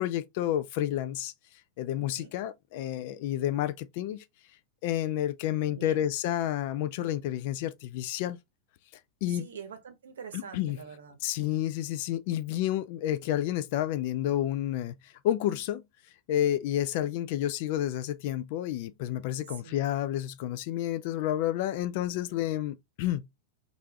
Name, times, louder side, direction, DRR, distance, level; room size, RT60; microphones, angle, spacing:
voice 1, 0.0-1.3 1.8-4.2 4.8-8.4 9.2-9.4 10.3-10.8 11.2-15.8 16.3-23.3, left 12 dB, 50° left, 0.4 m, -30 dB
voice 2, 5.7-6.1 9.3-11.2 19.5-19.8, right 6 dB, 65° right, 0.8 m, -44 dB
3.3 x 2.6 x 3.0 m
figure-of-eight pair, 90°, 0 cm